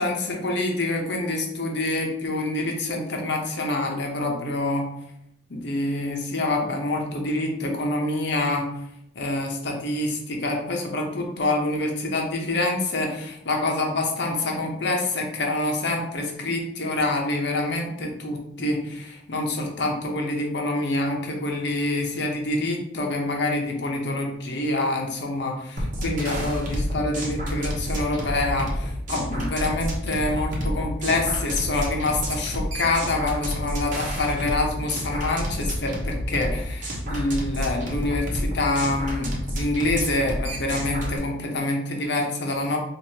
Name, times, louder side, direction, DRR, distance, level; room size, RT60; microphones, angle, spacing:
voice 1, 0.0-4.9 5.5-8.7 9.1-42.8, left 2 dB, 70° left, 1 dB, 0.8 m, -26 dB
sound 1, 25.8-41.2, equal, 45° right, 1.0 m, -29 dB
4.7 x 2.5 x 2.8 m, 0.77 s
head